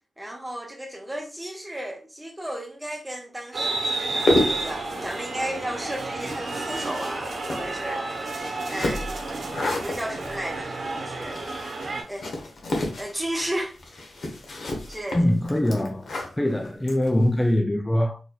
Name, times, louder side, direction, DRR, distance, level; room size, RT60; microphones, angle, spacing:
voice 1, 0.2-9.3 9.8-10.7 11.0-11.4 12.1-12.3 13.0-13.8 14.9-15.3, right 1 dB, 10° right, 1.0 m, -34 dB
sound 1, 3.5-12.0, right 2 dB, 60° right, 1.0 m, -31 dB
sound 2, 4.0-17.5, left 1 dB, 65° left, 0.9 m, -31 dB
voice 2, 15.1-16.1 16.4-18.2, left 1 dB, 15° left, 0.3 m, -22 dB
4.3 x 3.1 x 2.2 m
cardioid pair, 70°, 0 cm